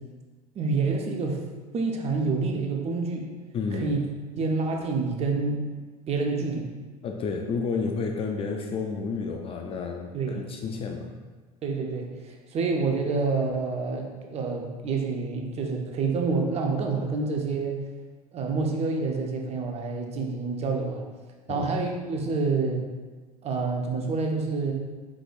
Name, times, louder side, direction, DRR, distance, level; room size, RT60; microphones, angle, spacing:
voice 1, 0.5-1.4 1.7-3.3 3.7-4.0 4.4-5.6 6.1-6.7 10.1-10.4 11.6-17.8 18.3-21.0 21.5-22.8 23.4-24.7, right 4 dB, 30° right, 2 dB, 0.7 m, -28 dB
voice 2, 3.5-4.0 7.0-11.1 21.5-21.7, left 4 dB, 30° left, 3 dB, 0.4 m, -31 dB
4.8 x 4.0 x 2.4 m, 1.4 s
hypercardioid pair, 80°, 21 cm